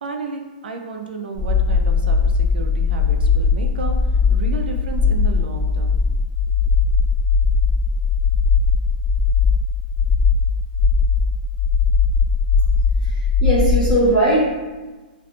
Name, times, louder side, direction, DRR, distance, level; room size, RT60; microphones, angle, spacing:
voice 1, 0.0-6.0 6.6-6.8, right 4 dB, 85° right, 3 dB, 0.4 m, -32 dB
sound 1, 1.4-13.9, left 5 dB, 30° left, 0.5 m, -18 dB
voice 2, 13.4-14.5, right 1 dB, ahead, -14 dB, 1.0 m, -18 dB
2.5 x 2.3 x 2.5 m, 1.2 s
hypercardioid pair, 165°, 5 cm